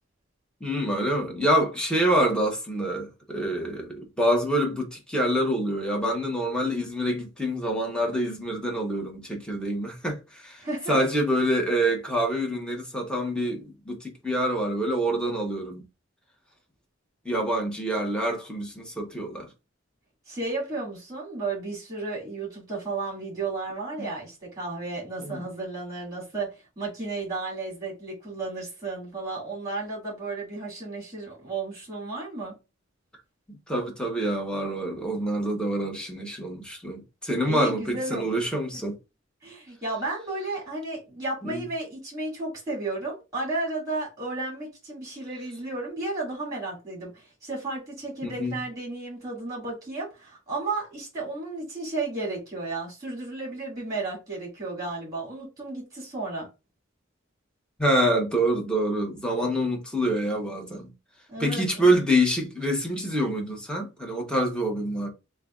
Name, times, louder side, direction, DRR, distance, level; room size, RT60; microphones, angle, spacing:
voice 1, 0.6-15.8 17.2-19.5 24.0-24.1 25.2-25.4 33.7-38.9 41.4-41.7 48.2-48.6 57.8-60.9 61.4-65.1, equal, 5° left, 0.9 m, -26 dB
voice 2, 10.6-11.0 20.3-32.5 37.5-38.4 39.4-56.5 61.3-61.9, right 3 dB, 20° right, 2.2 m, -33 dB
6.5 x 2.3 x 2.4 m
head